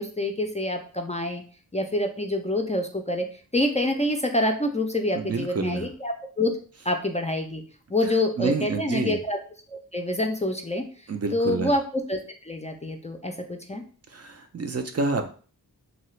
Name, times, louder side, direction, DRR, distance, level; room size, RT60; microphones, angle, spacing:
voice 1, 0.0-1.4 1.7-6.5 6.9-7.6 7.9-9.4 9.7-10.9 11.3-11.8 12.1-13.8, left 1 dB, 20° left, 4 dB, 0.4 m, -27 dB
voice 2, 5.1-5.9 8.0-8.1 8.4-9.2 11.1-11.7 14.1-15.3, right 4 dB, 40° right, 6 dB, 0.4 m, -28 dB
2.8 x 2.3 x 3.1 m, 0.41 s
cardioid pair, 50°, 38 cm